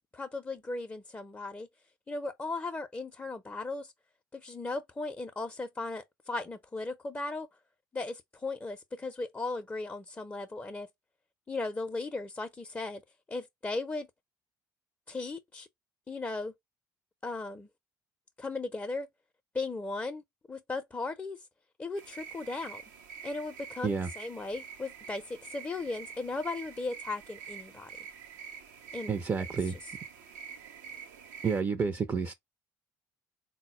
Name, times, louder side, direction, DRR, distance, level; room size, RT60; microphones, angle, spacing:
voice 1, 0.1-1.7 2.1-3.9 4.3-7.5 7.9-10.9 11.5-13.0 13.3-14.1 15.1-15.7 16.1-16.5 17.2-17.7 18.4-19.1 19.5-20.2 20.5-21.4 21.8-22.8 23.2-27.9 28.9-29.1, left 3 dB, 20° left, 0.6 m, -37 dB
sound 1, 22.0-31.6, right 7 dB, 70° right, 0.6 m, -47 dB
voice 2, 29.1-29.8 31.4-32.3, right 5 dB, 25° right, 0.5 m, -30 dB
3.9 x 2.1 x 3.6 m
figure-of-eight pair, 55°, 10 cm